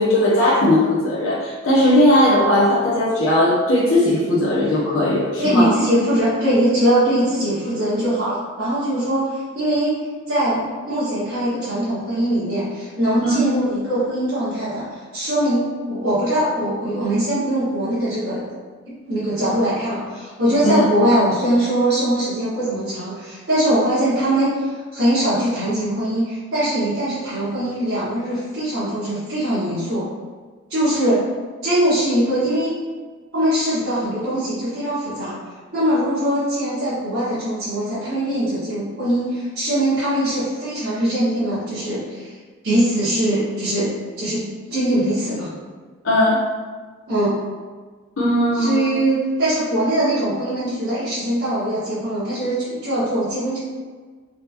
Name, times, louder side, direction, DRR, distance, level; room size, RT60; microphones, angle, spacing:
voice 1, 0.0-5.7 13.2-13.4 20.6-20.8 46.0-46.4 48.2-48.9, left 1 dB, 75° left, -7 dB, 0.8 m, -17 dB
voice 2, 5.4-10.0 10.3-18.4 18.8-30.1 30.7-31.2 31.6-32.7 33.3-35.4 35.7-42.3 42.6-43.9 44.2-45.5 47.1-47.4 48.6-53.6, right 1 dB, 60° right, -14 dB, 1.4 m, -21 dB
3.8 x 3.3 x 2.9 m, 1.5 s
head